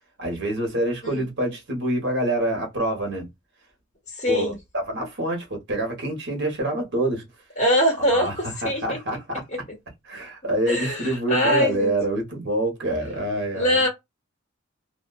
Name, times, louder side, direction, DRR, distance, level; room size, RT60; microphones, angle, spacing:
voice 1, 0.2-3.3 4.3-7.3 8.1-9.6 10.0-13.8, right 1 dB, 55° right, 1.2 m, -26 dB
voice 2, 4.2-4.5 7.6-8.3 8.6-8.8 10.7-11.9 13.5-13.9, equal, 35° left, 1.2 m, -22 dB
2.6 x 2.3 x 2.4 m
head